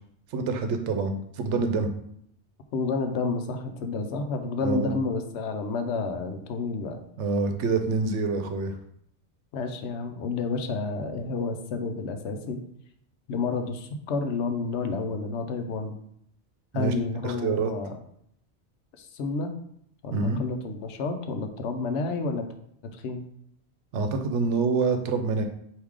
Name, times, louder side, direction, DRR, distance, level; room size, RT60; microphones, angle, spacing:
voice 1, 0.3-1.9 4.6-4.9 7.2-8.7 16.7-16.9 17.2-17.7 20.1-20.4 23.9-25.4, right 4 dB, 85° right, 6 dB, 0.9 m, -26 dB
voice 2, 2.7-7.0 9.5-12.6 13.3-16.0 16.7-18.0 19.0-19.5 20.0-22.5 22.9-23.2, left 4 dB, 75° left, 7 dB, 0.9 m, -30 dB
4.7 x 2.7 x 3.6 m, 0.70 s
omnidirectional pair, 1.2 m